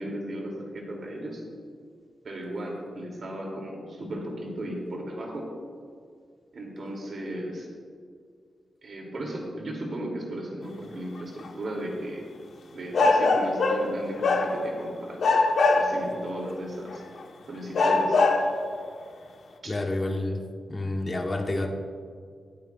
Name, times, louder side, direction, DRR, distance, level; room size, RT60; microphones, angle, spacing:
voice 1, 0.0-1.4 2.2-5.5 6.5-7.7 8.8-12.3 12.7-15.2 15.7-17.0 17.5-18.2 19.6-19.7, right 1 dB, 50° right, -1 dB, 2.6 m, -35 dB
sound 1, 11.4-11.5 12.9-13.9 14.2-14.8 15.2-16.1 16.9-17.0 17.7-18.5, left 3 dB, 60° left, 1.0 m, -22 dB
voice 2, 19.6-20.4 20.7-21.7, left 2 dB, 25° left, 2 dB, 1.1 m, -29 dB
22.5 x 9.2 x 2.4 m, 2.2 s
wide cardioid pair, 165°, 0 cm